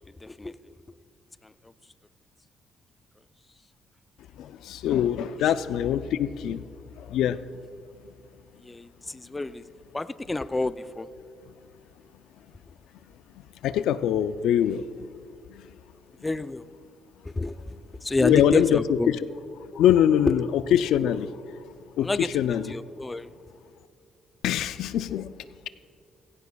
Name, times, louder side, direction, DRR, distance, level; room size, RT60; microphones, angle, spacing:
voice 1, 0.2-0.7 1.4-1.5 4.9-5.0 5.4-5.5 8.6-9.6 9.9-11.1 16.2-16.6 17.3-17.7 18.0-19.1 19.7-19.8 22.0-22.3 22.7-23.3, left 2 dB, 15° left, 14 dB, 0.4 m, -29 dB
voice 2, 4.4-6.6 7.0-7.4 13.6-15.1 15.5-15.7 18.2-19.2 19.7-21.3 22.0-22.7 24.4-25.3, left 10 dB, 85° left, 13 dB, 0.4 m, -23 dB
16.5 x 16.0 x 2.3 m, 2.4 s
cardioid pair, 90°, 0 cm